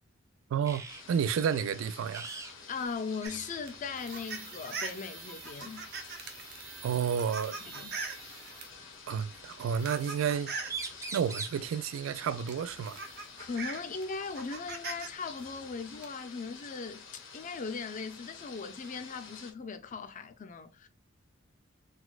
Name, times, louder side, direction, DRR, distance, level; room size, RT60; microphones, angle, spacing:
voice 1, 0.5-2.3 6.8-7.6 9.1-10.5 11.1-13.0, right 7 dB, 80° right, 0.3 m, -31 dB
sound 1, 0.6-1.0 1.3-1.6 2.1-2.5 2.8-2.9 3.2-3.8 5.0-5.2 6.9-7.0 8.1-8.9 10.3-10.4 10.6-11.6 13.6-13.7 14.1-15.1, right 4 dB, 15° right, 0.4 m, -42 dB
sound 2, 0.9-19.5, left 5 dB, 75° left, 0.9 m, -50 dB
voice 2, 2.7-5.9 7.6-8.0 13.4-20.9, left 5 dB, 40° left, 0.5 m, -39 dB
sound 3, 3.2-8.7 9.4-10.8 12.0-12.1 12.5-15.1 15.4-16.0, right 4 dB, 55° right, 0.7 m, -42 dB
4.0 x 2.2 x 2.4 m
head